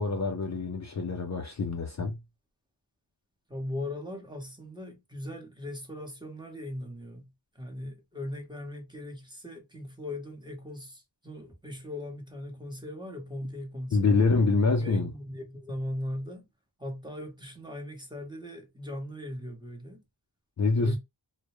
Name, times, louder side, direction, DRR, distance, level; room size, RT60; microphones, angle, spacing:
voice 1, 0.0-2.2 13.9-15.1 20.6-21.0, left 3 dB, 40° left, 0.4 m, -26 dB
voice 2, 3.5-7.3 7.5-14.2 14.8-16.4 16.8-20.0 20.7-21.0, left 1 dB, 10° right, 0.8 m, -39 dB
2.1 x 2.0 x 2.9 m
wide cardioid pair, 85°, 45 cm